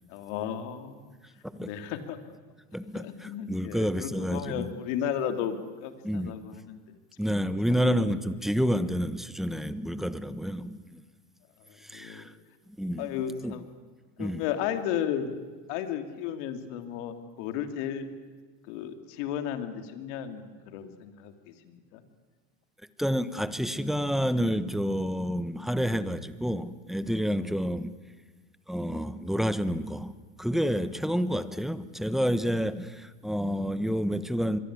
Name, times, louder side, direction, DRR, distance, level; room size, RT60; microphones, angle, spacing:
voice 1, 0.1-1.1 1.6-2.2 2.9-6.8 7.7-8.0 8.2-8.4 11.7-12.3 13.0-13.7 14.2-15.3 15.7-18.1 18.6-22.0, left 9 dB, 70° left, 7 dB, 3.2 m, -34 dB
voice 2, 2.7-4.7 6.0-6.3 7.2-11.0 11.8-12.3 12.8-13.1 13.4-13.5 14.2-14.4 23.0-27.9 28.7-30.1 30.4-34.6, equal, ahead, 13 dB, 1.2 m, -29 dB
25.0 x 22.5 x 9.8 m, 1.4 s
supercardioid pair, 110°, 37 cm